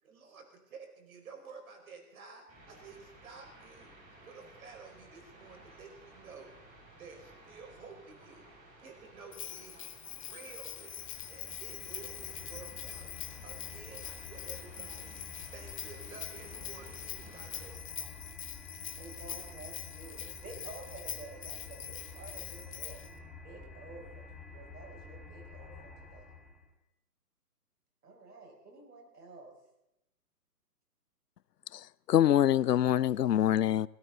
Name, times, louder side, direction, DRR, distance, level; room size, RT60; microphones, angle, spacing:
voice 1, 0.0-3.9 4.2-6.5 7.0-8.5 8.8-11.0 11.3-13.1 13.4-15.1 15.5-17.8 19.2-19.4, right 5 dB, 60° right, 5.1 m, -52 dB
sound 1, 2.5-17.7, right 2 dB, 25° right, 6.5 m, -56 dB
Bell, 9.3-23.1, left 10 dB, 20° left, 0.7 m, -44 dB
sound 2, 10.5-26.7, left 3 dB, ahead, 2.3 m, -50 dB
voice 2, 19.0-23.1 23.4-26.3 28.0-29.6, right 3 dB, 80° right, 5.9 m, -50 dB
voice 3, 32.1-33.9, left 11 dB, 85° left, 0.7 m, -25 dB
20.5 x 17.0 x 4.0 m
hypercardioid pair, 155°, 46 cm